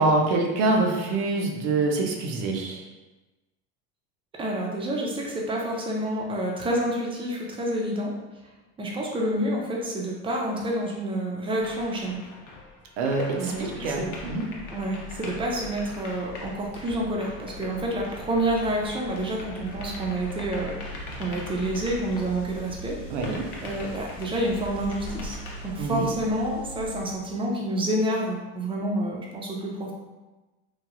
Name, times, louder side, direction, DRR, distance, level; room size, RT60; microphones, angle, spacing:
voice 1, 0.0-2.8 13.0-14.5 23.1-23.5 25.8-26.1, right 3 dB, 75° right, 2 dB, 0.7 m, -25 dB
voice 2, 4.4-8.1 8.8-12.2 13.4-14.1 14.7-20.7 21.2-23.0 23.6-25.4 25.6-29.9, right 1 dB, 15° right, -2 dB, 0.5 m, -28 dB
sound 1, 11.6-22.8 23.2-25.7, left 2 dB, 60° left, 0.8 m, -43 dB
sound 2, 13.5-27.2, right 1 dB, 15° left, 1.1 m, -42 dB
3.1 x 2.2 x 2.4 m, 1.1 s
supercardioid pair, 105°, 36 cm